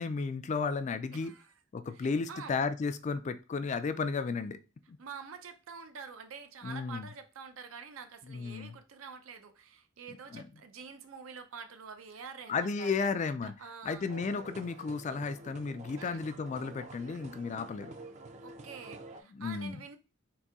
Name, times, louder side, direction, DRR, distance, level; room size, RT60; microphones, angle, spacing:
voice 1, 0.0-1.3 1.7-4.6 4.9-5.0 6.6-7.1 8.3-8.8 10.3-10.4 12.5-13.5 13.8-17.9 19.3-19.8, left 4 dB, 35° left, 0.3 m, -33 dB
voice 2, 1.1-1.5 1.9-2.5 5.0-13.1 13.4-14.1 16.0-16.2 18.4-20.0, right 5 dB, 80° right, 0.5 m, -47 dB
sound 1, 14.0-19.2, right 2 dB, 35° right, 0.4 m, -48 dB
4.0 x 2.6 x 3.6 m
head